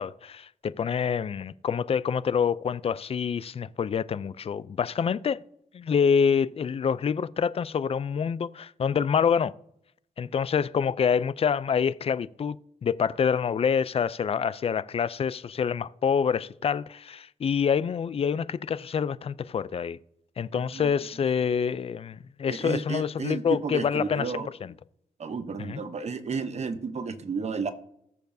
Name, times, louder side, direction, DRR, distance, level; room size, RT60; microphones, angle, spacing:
voice 1, 0.0-5.4 5.7-9.5 10.2-20.0 20.4-24.7 25.6-25.8, left 7 dB, 45° left, 0.4 m, -27 dB
voice 2, 20.5-20.9 22.5-24.5 25.2-27.7, right 5 dB, 50° right, 0.8 m, -32 dB
19.0 x 6.9 x 2.7 m
cardioid pair, 95°, 14 cm